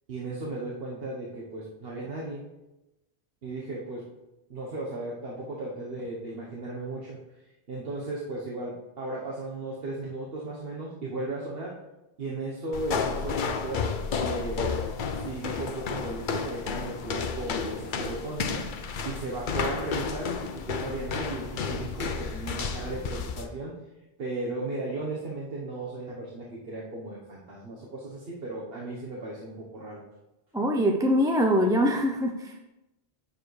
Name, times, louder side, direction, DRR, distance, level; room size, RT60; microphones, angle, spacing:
voice 1, 0.1-2.4 3.4-4.1 4.5-7.2 7.7-11.8 12.2-13.9 14.2-14.8 15.1-18.7 19.0-20.4 20.6-23.7 24.2-30.0, right 2 dB, 65° right, -4 dB, 1.3 m, -36 dB
sound 1, 12.7-23.5, left 5 dB, 55° left, 0.7 m, -32 dB
voice 2, 30.5-32.7, equal, 5° right, 2 dB, 0.4 m, -24 dB
9.3 x 6.9 x 3.2 m, 0.96 s
omnidirectional pair, 1.1 m